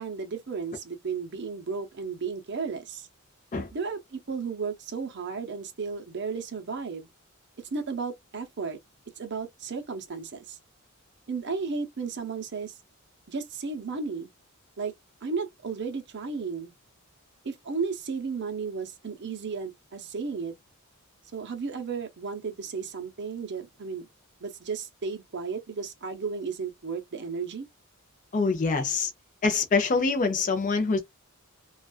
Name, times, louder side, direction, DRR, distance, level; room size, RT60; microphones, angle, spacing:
voice 1, 0.0-3.1 3.7-7.1 7.7-8.8 9.2-10.6 11.3-12.7 13.3-14.3 14.8-14.9 15.2-16.7 17.4-20.5 21.3-24.1 24.4-27.7, right 5 dB, 50° right, 0.7 m, -34 dB
voice 2, 28.3-29.1 29.4-31.0, left 4 dB, 35° left, 0.5 m, -25 dB
2.3 x 2.3 x 2.3 m
head